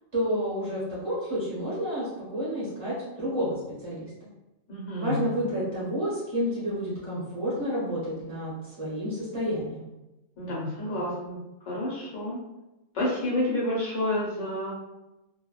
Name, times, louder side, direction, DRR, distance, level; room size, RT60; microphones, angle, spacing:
voice 1, 0.1-4.1 5.0-9.8, equal, 30° right, -9 dB, 0.6 m, -30 dB
voice 2, 4.7-5.2 10.4-11.4 11.6-12.4 12.9-14.7, left 1 dB, 75° left, -6 dB, 1.2 m, -29 dB
2.6 x 2.1 x 2.3 m, 0.97 s
omnidirectional pair, 1.3 m